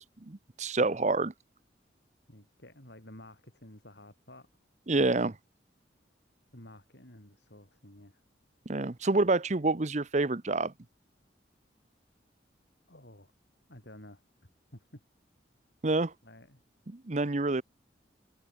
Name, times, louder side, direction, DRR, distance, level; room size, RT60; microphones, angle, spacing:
voice 1, 0.0-1.3 4.9-5.3 8.7-10.7 15.8-16.1 16.9-17.6, right 2 dB, 40° right, 0.8 m, -28 dB
voice 2, 2.3-4.5 6.5-8.2 9.1-9.2 12.9-13.3 13.7-14.2 14.7-15.0 16.2-16.6, left 1 dB, 65° left, 6.4 m, -52 dB
head